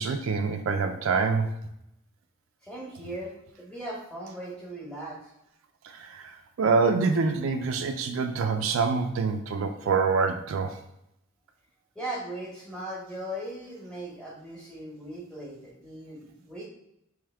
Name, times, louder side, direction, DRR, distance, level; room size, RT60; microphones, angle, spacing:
voice 1, 0.0-1.5 5.9-10.8, right 4 dB, 65° right, 6 dB, 0.3 m, -26 dB
voice 2, 2.6-3.3 3.6-5.3 11.9-16.7, right 1 dB, 5° left, -5 dB, 1.2 m, -38 dB
3.4 x 3.2 x 3.3 m, 0.81 s
head